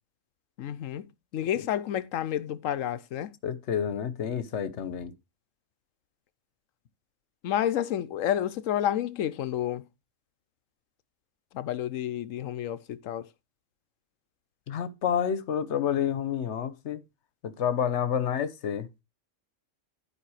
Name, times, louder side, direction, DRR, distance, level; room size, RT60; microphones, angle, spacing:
voice 1, 0.6-1.1 1.3-3.3 7.4-9.8 11.5-13.3, left 11 dB, 90° left, 1.1 m, -30 dB
voice 2, 3.4-5.1 14.7-17.0 17.4-18.9, left 8 dB, 65° left, 1.2 m, -29 dB
11.5 x 5.1 x 4.8 m
omnidirectional pair, 1.3 m